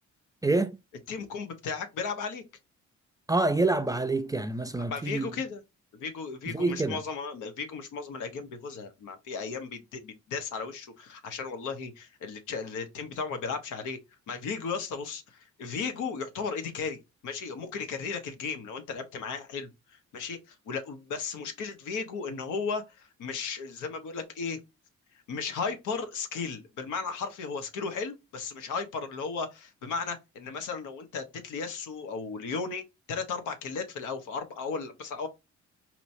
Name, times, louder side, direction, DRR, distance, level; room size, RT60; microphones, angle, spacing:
voice 1, 0.4-0.8 3.3-5.3 6.5-7.0, right 2 dB, 10° right, 0.4 m, -27 dB
voice 2, 1.1-2.4 4.8-5.6 5.9-14.0 14.3-24.6 25.3-35.3, left 5 dB, 85° left, 1.0 m, -35 dB
4.4 x 3.0 x 2.6 m
cardioid pair, 90°, 30 cm